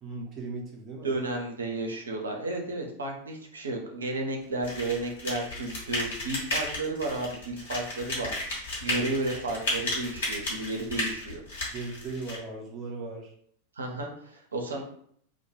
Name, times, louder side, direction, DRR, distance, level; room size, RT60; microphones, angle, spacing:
voice 1, 0.0-1.2 8.9-9.1 11.7-13.3, right 3 dB, 30° right, 0 dB, 0.6 m, -38 dB
voice 2, 1.0-8.3 8.8-11.4 13.8-14.8, right 2 dB, 70° right, 1 dB, 0.5 m, -32 dB
sound 1, 4.6-12.4, left 1 dB, 60° left, 1.0 m, -33 dB
2.2 x 2.0 x 3.0 m, 0.64 s
figure-of-eight pair, 90°, 0 cm